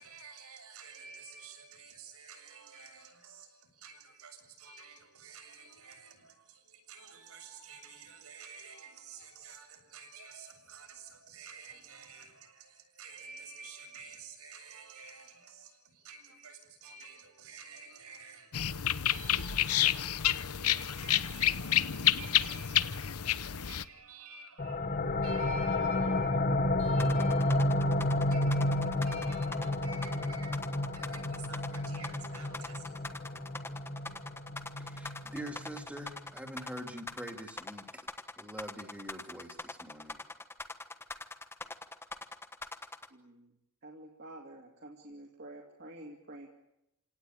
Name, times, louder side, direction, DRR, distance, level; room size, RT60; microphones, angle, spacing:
voice 1, 0.0-18.7 19.1-30.6 31.0-32.8, right 4 dB, 75° right, 7.3 m, -51 dB
sound 1, 18.5-23.8, left 11 dB, 80° left, 0.9 m, -29 dB
sound 2, 24.6-36.0, left 1 dB, 40° left, 1.1 m, -31 dB
sound 3, 27.0-43.1, left 2 dB, 10° left, 1.2 m, -43 dB
voice 2, 34.8-38.1 38.4-40.2, right 1 dB, 5° right, 1.9 m, -44 dB
voice 3, 43.1-43.5 43.8-46.5, right 1 dB, 50° right, 2.6 m, -49 dB
29.5 x 18.5 x 9.0 m
head